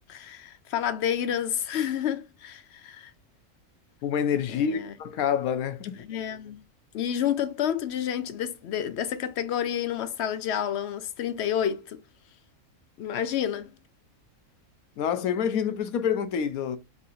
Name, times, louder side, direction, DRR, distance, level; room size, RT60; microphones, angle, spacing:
voice 1, 0.1-3.1 4.5-4.9 6.0-6.6 6.9-12.0 13.0-13.7, left 9 dB, 65° left, 0.7 m, -29 dB
voice 2, 4.0-6.0 15.0-16.8, left 8 dB, 85° left, 1.2 m, -27 dB
4.2 x 3.7 x 2.5 m
omnidirectional pair, 1.5 m